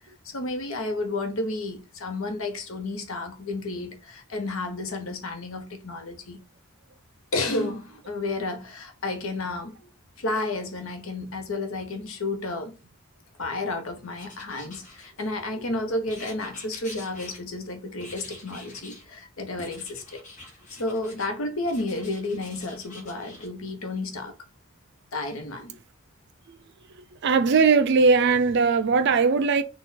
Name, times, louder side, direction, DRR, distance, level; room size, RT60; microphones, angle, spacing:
voice 1, 0.2-6.4 7.3-9.9 10.2-12.7 13.4-20.2 20.7-24.3 25.1-25.7, left 2 dB, 75° left, 0.9 m, -31 dB
Writing, 14.1-15.5 16.1-17.7 18.0-19.1 19.6-21.3 21.6-23.5, left 2 dB, 35° left, 1.1 m, -46 dB
voice 2, 27.2-29.6, right 4 dB, 55° right, 0.4 m, -19 dB
4.2 x 2.4 x 4.0 m
head